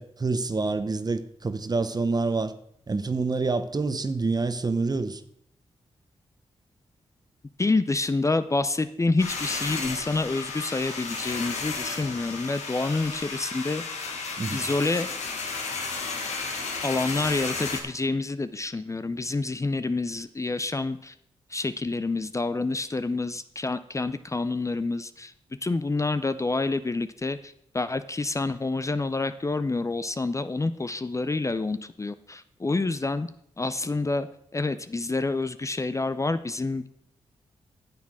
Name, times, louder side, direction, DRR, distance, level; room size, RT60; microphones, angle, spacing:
voice 1, 0.0-2.5 2.9-5.2 14.4-14.6, right 3 dB, 35° right, 1.0 m, -27 dB
voice 2, 7.6-14.1 14.5-15.1 16.8-21.1 21.5-25.3 25.6-33.3 33.6-36.9, left 3 dB, 25° left, 0.6 m, -28 dB
sound 1, 9.2-17.8, left 4 dB, 85° left, 1.6 m, -33 dB
9.2 x 7.4 x 6.2 m
supercardioid pair, 50°, 11 cm